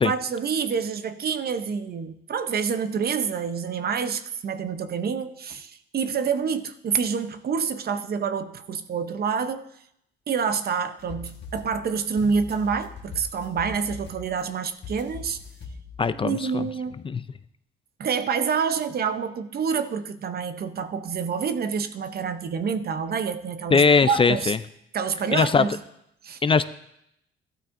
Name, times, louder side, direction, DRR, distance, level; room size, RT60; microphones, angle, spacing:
voice 1, 0.0-9.7 10.3-15.4 16.2-16.9 18.0-24.5 24.9-25.7 26.2-26.4, right 6 dB, 50° right, 11 dB, 0.7 m, -27 dB
sound 1, 11.0-16.3, left 4 dB, 60° left, 1.5 m, -41 dB
voice 2, 16.0-16.7 17.0-17.2 23.7-24.6 25.3-25.6 26.4-26.7, left 5 dB, 25° left, 13 dB, 0.4 m, -20 dB
14.0 x 12.0 x 2.6 m, 0.78 s
cardioid pair, 90°, 20 cm